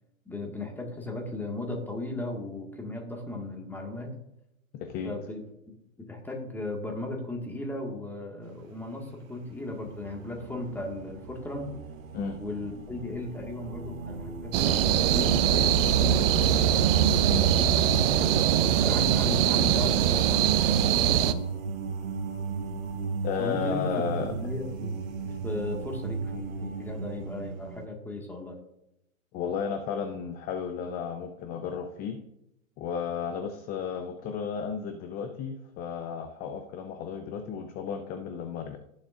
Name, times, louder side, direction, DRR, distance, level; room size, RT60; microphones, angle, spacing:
voice 1, 0.2-4.1 5.0-11.7 12.4-16.8 18.1-18.4 18.6-20.8 23.4-24.9 25.2-28.6, left 2 dB, 5° left, 1 dB, 1.8 m, -36 dB
voice 2, 4.7-5.1 12.1-12.4 17.3-17.5 23.2-24.3 29.3-32.2 32.8-38.8, left 7 dB, 20° left, 6 dB, 0.6 m, -33 dB
sound 1, 8.5-8.8 9.4-27.9, right 5 dB, 65° right, 1.3 m, -36 dB
sound 2, 14.5-21.3, right 9 dB, 45° right, 0.7 m, -22 dB
16.0 x 7.2 x 2.5 m, 0.83 s
hypercardioid pair, 125°, 42 cm